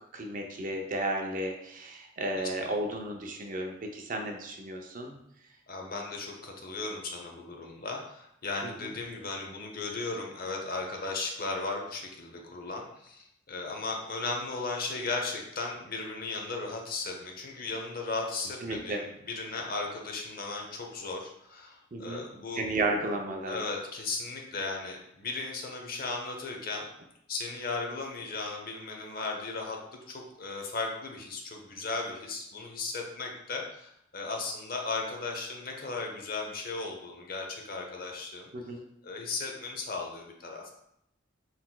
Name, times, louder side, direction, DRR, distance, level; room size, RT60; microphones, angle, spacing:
voice 1, 0.1-5.1 8.6-8.7 18.6-19.0 21.9-22.2 22.5-23.6 38.5-38.8, right 2 dB, 45° right, 2 dB, 0.5 m, -33 dB
voice 2, 2.4-2.7 5.7-22.6 23.5-26.9 27.3-38.5 39.0-40.7, left 3 dB, 50° left, 1 dB, 0.7 m, -36 dB
4.3 x 4.1 x 2.2 m, 0.78 s
head